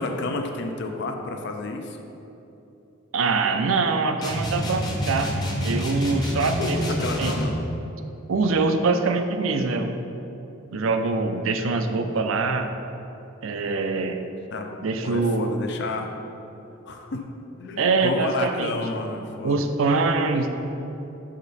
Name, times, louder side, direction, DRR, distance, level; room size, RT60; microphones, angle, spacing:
voice 1, 0.0-2.0 6.6-7.6 14.5-14.8 15.0-16.1 16.9-17.2 17.6-19.7, left 3 dB, 55° left, 4 dB, 0.5 m, -31 dB
voice 2, 3.1-5.3 5.6-7.3 8.3-9.9 10.7-12.7 13.4-14.2 14.8-15.6 17.8-18.7 19.4-20.5, right 3 dB, 75° right, 7 dB, 0.5 m, -24 dB
sound 1, 4.2-7.6, equal, 20° left, 0.8 m, -27 dB
6.6 x 5.1 x 4.1 m, 2.9 s
head